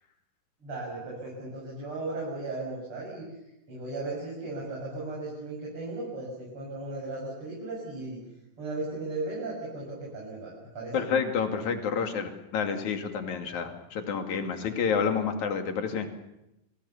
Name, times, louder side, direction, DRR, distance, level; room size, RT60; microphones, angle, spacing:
voice 1, 0.6-3.4 3.7-8.2 8.6-11.1, right 2 dB, 40° right, -4 dB, 7.9 m, -36 dB
voice 2, 10.9-16.1, left 6 dB, 65° left, 5 dB, 3.7 m, -29 dB
29.0 x 21.5 x 7.2 m, 0.90 s
omnidirectional pair, 3.8 m